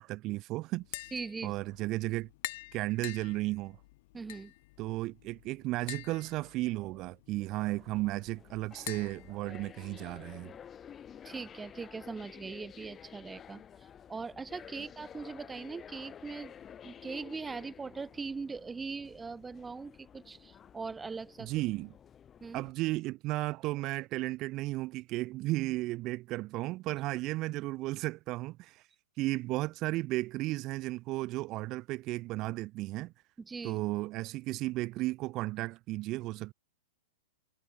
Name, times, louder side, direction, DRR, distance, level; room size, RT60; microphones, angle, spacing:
voice 1, 0.0-1.1 1.4-2.3 2.7-3.8 4.8-10.6 21.4-21.9 22.5-28.9 29.2-33.1 33.6-36.5, right 19 dB, 40° right, 2.0 m, -34 dB
Tap, 0.8-10.2, left 20 dB, 55° left, 8.0 m, -47 dB
voice 2, 1.1-1.5 4.1-4.5 11.2-13.6 14.1-16.5 16.8-21.5 22.4-22.6 33.4-33.8, right 4 dB, 15° right, 2.8 m, -41 dB
sound 1, 7.7-22.7, left 8 dB, 25° left, 2.4 m, -52 dB
hypercardioid pair, 110°, 0 cm